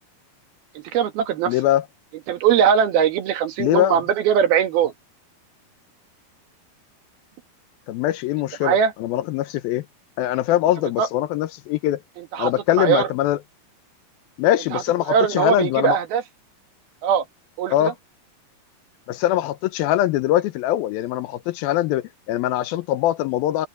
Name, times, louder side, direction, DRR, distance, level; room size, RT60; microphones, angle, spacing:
voice 1, 0.8-1.5 2.3-4.9 8.6-8.9 11.0-11.1 12.3-12.5 12.8-13.1 14.7-14.8 15.1-16.2 17.0-17.3 17.6-17.9, right 8 dB, 75° right, 3.7 m, -20 dB
voice 2, 1.5-1.8 3.6-4.0 7.9-9.9 10.2-12.0 12.4-13.4 14.4-16.0 17.7-17.9 19.1-23.7, left 13 dB, 80° left, 2.6 m, -22 dB
omnidirectional pair, 4.4 m